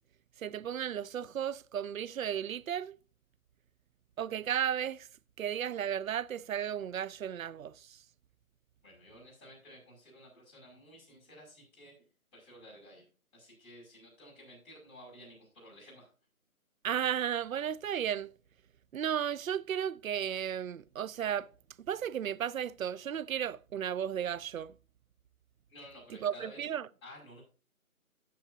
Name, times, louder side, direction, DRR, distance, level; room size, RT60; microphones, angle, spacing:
voice 1, 0.4-3.0 4.2-5.1 5.4-8.0 16.8-18.3 18.9-21.5 21.9-24.7 26.2-26.8, right 9 dB, 70° right, 0.5 m, -34 dB
voice 2, 8.8-11.9 12.3-13.1 13.3-16.1 25.7-26.6 27.0-27.4, equal, 20° left, 5.7 m, -53 dB
13.5 x 7.9 x 2.7 m
figure-of-eight pair, 165°, 44 cm